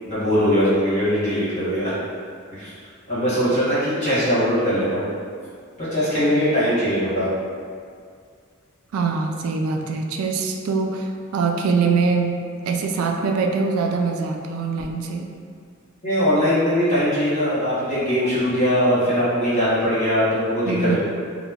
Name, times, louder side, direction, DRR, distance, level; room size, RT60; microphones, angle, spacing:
voice 1, 0.0-2.1 2.5-2.7 3.1-5.0 5.8-7.3 16.0-21.0, equal, 35° left, -12 dB, 1.3 m, -21 dB
voice 2, 8.9-12.4 12.7-15.3 20.6-21.0, right 4 dB, 90° right, 3 dB, 0.3 m, -23 dB
2.9 x 2.1 x 3.5 m, 2.1 s
head